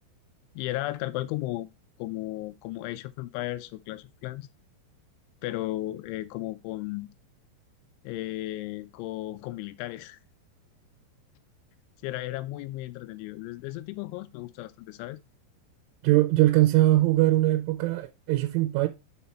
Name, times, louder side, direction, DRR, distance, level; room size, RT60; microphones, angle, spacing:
voice 1, 0.6-1.7 2.0-4.5 5.4-7.1 8.0-10.2 12.0-15.2, left 16 dB, 85° left, 2.8 m, -35 dB
voice 2, 16.0-18.9, right 16 dB, 80° right, 3.1 m, -21 dB
6.9 x 4.7 x 4.2 m
omnidirectional pair, 5.6 m